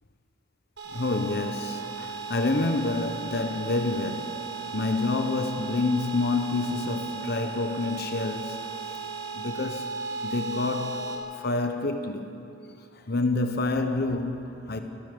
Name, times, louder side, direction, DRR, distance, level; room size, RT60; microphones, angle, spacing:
sound 1, 0.8-11.2, right 5 dB, 90° right, 4.8 m, -36 dB
voice 1, 0.9-8.7 9.3-9.9 10.2-12.3 12.9-14.8, left 3 dB, 60° left, 1.1 m, -28 dB
29.0 x 14.0 x 6.9 m
head